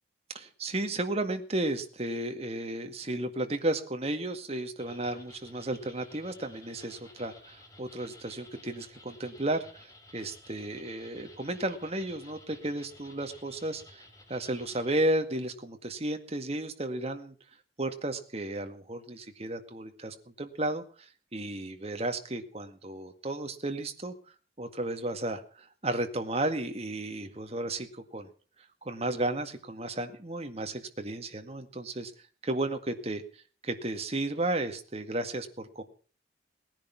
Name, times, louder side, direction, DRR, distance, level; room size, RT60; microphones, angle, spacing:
voice 1, 0.3-14.0 14.3-17.3 17.8-24.1 24.6-28.3 28.8-32.1 32.4-33.2 33.6-35.8, right 1 dB, 35° right, 7 dB, 2.0 m, -33 dB
sound 1, 4.8-14.9, left 2 dB, 20° left, 3.3 m, -54 dB
19.0 x 10.5 x 5.9 m, 0.41 s
head